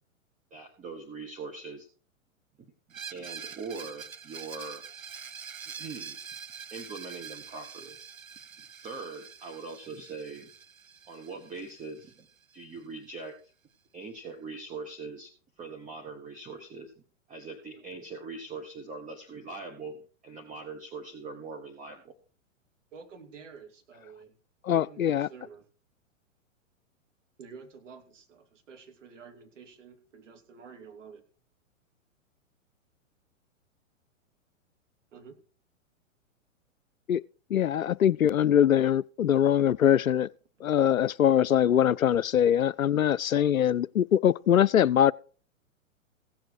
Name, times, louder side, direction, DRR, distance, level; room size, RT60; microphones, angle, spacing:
voice 1, 0.5-1.9 2.6-2.7 3.1-4.8 5.7-6.2 6.7-8.0 8.7-10.5 11.1-12.2 12.5-13.3 13.9-16.9 17.3-22.1, right 4 dB, 20° right, 1.5 m, -41 dB
Screech, 2.9-12.6, right 7 dB, 90° right, 0.7 m, -45 dB
voice 2, 22.9-24.3 24.7-25.6 27.4-31.2 35.1-35.4, right 5 dB, 65° right, 2.8 m, -49 dB
voice 3, 24.6-25.3 37.1-37.2 37.5-40.3 40.6-45.1, left 10 dB, 85° left, 0.5 m, -23 dB
16.5 x 7.9 x 4.8 m
figure-of-eight pair, 110°, 40 cm